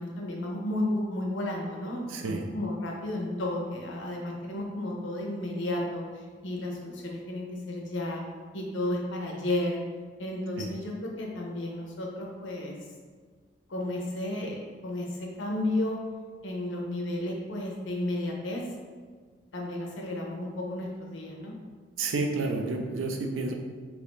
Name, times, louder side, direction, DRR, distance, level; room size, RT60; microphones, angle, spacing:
voice 1, 0.0-8.2 8.5-9.8 10.2-12.8 13.7-16.0 16.4-18.6 19.5-21.5, left 1 dB, 70° left, 0 dB, 0.6 m, -33 dB
voice 2, 2.1-2.4 10.6-10.7 22.0-23.5, right 3 dB, 90° right, 3 dB, 0.4 m, -30 dB
2.9 x 2.6 x 3.5 m, 1.6 s
head